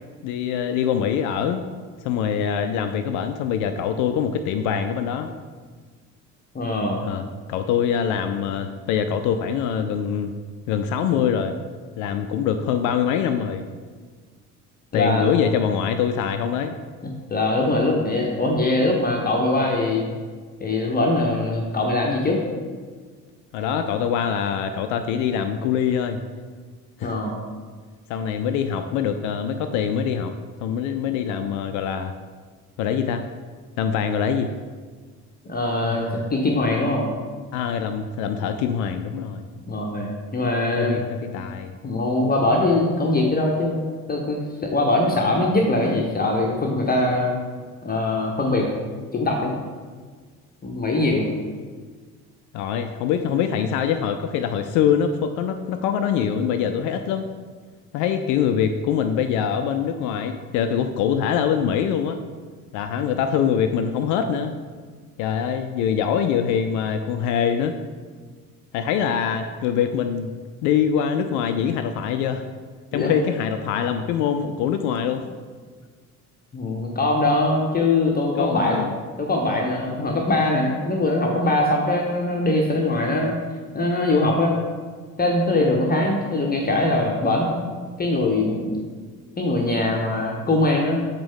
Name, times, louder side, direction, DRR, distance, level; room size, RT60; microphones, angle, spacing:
voice 1, 0.2-1.7 2.0-5.3 7.0-10.3 10.7-11.5 12.0-13.6 14.9-16.8 23.5-26.2 27.0-27.2 28.1-30.3 30.6-32.1 32.8-33.2 33.8-34.5 35.8-36.2 37.5-39.4 40.8-41.8 52.5-57.3 57.9-62.2 62.7-64.6 65.2-67.7 68.7-70.3 70.6-72.4 72.9-75.2 78.4-78.9, left 8 dB, 45° left, 8 dB, 0.4 m, -24 dB
voice 2, 6.5-7.0 14.9-15.3 17.0-20.0 20.6-22.4 27.0-27.3 35.4-37.1 39.7-41.0 41.8-43.8 44.1-47.3 47.8-48.7 49.1-49.5 50.6-51.3 72.9-73.1 76.5-78.8 79.2-83.3 83.7-84.5 85.2-87.6 88.0-88.8 89.4-91.0, left 2 dB, 20° left, -1 dB, 0.8 m, -22 dB
7.2 x 5.1 x 3.6 m, 1.6 s
figure-of-eight pair, 55°, 45 cm